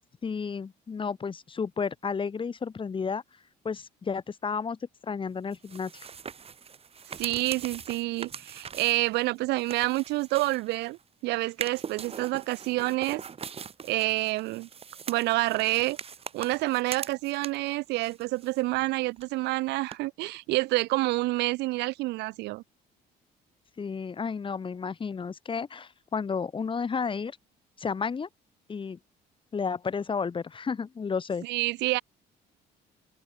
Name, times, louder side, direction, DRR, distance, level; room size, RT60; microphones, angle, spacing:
voice 1, 0.2-3.2 3.6-6.1 23.8-27.4 27.8-28.3 28.7-29.0 29.5-31.5, left 5 dB, 30° left, 2.4 m, -32 dB
sound 1, 5.5-11.0 11.5-17.7 18.0-18.9 19.2-19.3 19.9-20.0, right 6 dB, 35° right, 2.8 m, -42 dB
voice 2, 7.2-13.2 13.8-14.7 15.1-16.0 16.3-22.6 31.4-32.0, right 20 dB, 90° right, 1.6 m, -28 dB
open air
cardioid pair, 110°, 17 cm